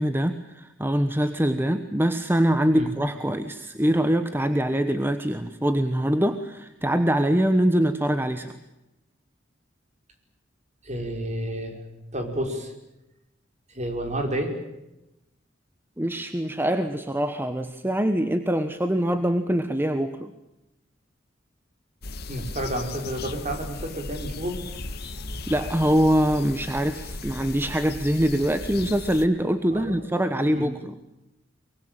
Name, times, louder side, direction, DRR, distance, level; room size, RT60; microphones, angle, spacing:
voice 1, 0.0-8.5 16.0-20.3 25.5-31.0, equal, 10° right, 9 dB, 1.2 m, -24 dB
voice 2, 10.8-11.8 12.1-12.7 13.7-14.5 22.3-24.6 25.0-25.2 29.7-30.0 30.4-30.8, right 1 dB, 40° right, 5 dB, 5.2 m, -31 dB
sound 1, 22.0-29.3, left 2 dB, 55° left, 1.7 m, -36 dB
23.5 x 23.5 x 9.0 m, 0.93 s
head